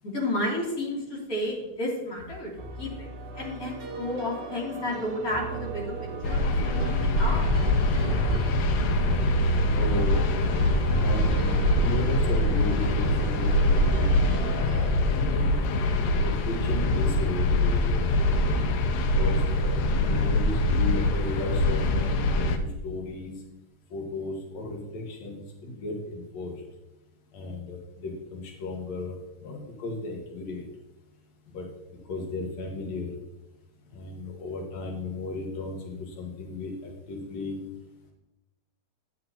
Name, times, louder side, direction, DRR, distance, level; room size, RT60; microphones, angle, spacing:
voice 1, 0.0-2.5 2.8-3.1 3.3-5.9 6.2-7.6, left 1 dB, 30° left, -5 dB, 3.0 m, -32 dB
sound 1, 2.6-14.9, right 2 dB, 55° right, 1.4 m, -34 dB
sound 2, 6.2-22.6, left 1 dB, 85° left, 2.1 m, -24 dB
voice 2, 9.7-10.2 11.0-14.0 15.1-15.5 16.2-18.1 19.1-23.3 23.9-26.6 27.3-30.6 31.5-31.7 32.1-33.1 33.9-36.7 37.1-37.6, left 2 dB, 65° left, -1 dB, 2.7 m, -34 dB
12.5 x 7.8 x 2.8 m, 0.98 s
omnidirectional pair, 3.3 m